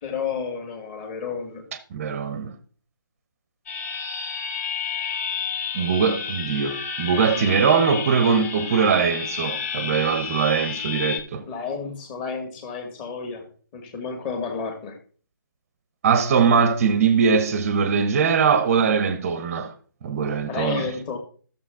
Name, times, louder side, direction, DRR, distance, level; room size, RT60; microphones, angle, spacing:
voice 1, 0.0-1.6 11.5-13.4 13.7-15.0 20.5-21.2, left 5 dB, 20° left, 2.1 m, -31 dB
voice 2, 1.9-2.5 5.7-11.5 16.0-19.7 20.0-20.8, right 6 dB, 30° right, 0.9 m, -21 dB
sound 1, 3.7-11.2, left 6 dB, 40° left, 2.3 m, -31 dB
13.5 x 6.8 x 3.7 m
figure-of-eight pair, 150°, 12 cm